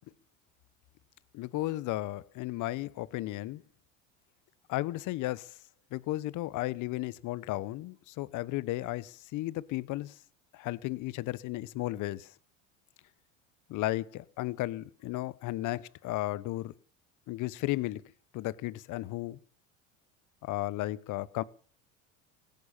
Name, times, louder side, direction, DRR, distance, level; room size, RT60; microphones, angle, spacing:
voice 1, 1.3-3.6 4.7-5.6 5.9-10.2 10.5-12.3 13.7-16.7 17.3-18.0 18.3-19.4 20.4-21.4, left 17 dB, 55° left, 1.1 m, -34 dB
17.0 x 11.0 x 7.3 m
supercardioid pair, 100°, 36 cm